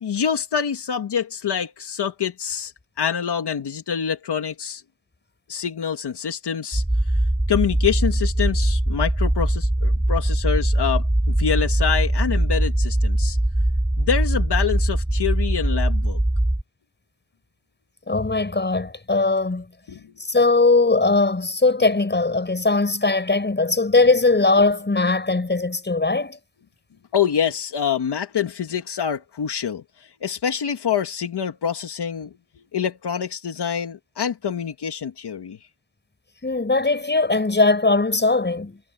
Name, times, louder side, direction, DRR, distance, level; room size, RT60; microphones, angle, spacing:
voice 1, 0.0-2.7 3.0-4.8 5.5-6.8 7.5-13.4 14.0-16.2 19.9-20.1 27.1-35.6, left 8 dB, 80° left, 1.9 m, -26 dB
sound 1, 6.7-16.6, right 1 dB, 10° right, 5.9 m, -21 dB
voice 2, 18.1-19.7 20.2-26.4 36.4-38.8, left 3 dB, 25° left, 6.4 m, -20 dB
wide cardioid pair, 130°, 39 cm